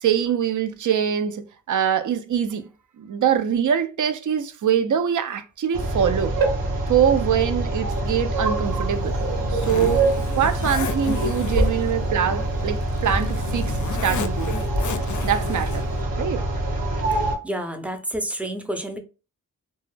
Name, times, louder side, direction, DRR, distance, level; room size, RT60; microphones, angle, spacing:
voice 1, 0.0-2.6 3.0-6.3 6.9-9.2 9.5-14.6 15.2-15.8 16.2-16.5, right 8 dB, 60° right, 0.5 m, -23 dB
sound 1, 5.7-17.3, right 1 dB, 80° right, 0.8 m, -25 dB
Zipper (clothing), 8.6-16.0, left 6 dB, 60° left, 0.4 m, -34 dB
voice 2, 17.1-19.0, right 1 dB, 5° right, 0.5 m, -30 dB
2.2 x 2.0 x 3.2 m
cardioid pair, 55°, 35 cm